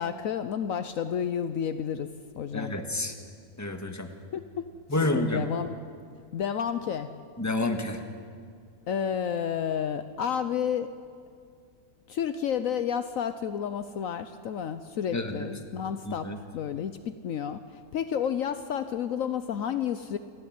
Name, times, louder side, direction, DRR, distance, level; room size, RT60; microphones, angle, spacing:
voice 1, 0.0-2.1 2.3-2.7 4.3-4.6 4.9-5.8 6.3-7.1 8.9-10.9 12.1-20.2, left 8 dB, 70° left, 10 dB, 1.1 m, -31 dB
voice 2, 2.5-3.1 3.6-4.1 4.9-5.4 7.4-8.0 15.1-15.5 16.1-16.4, left 2 dB, 10° left, 5 dB, 1.5 m, -29 dB
27.5 x 11.5 x 9.4 m, 2.2 s
omnidirectional pair, 1.6 m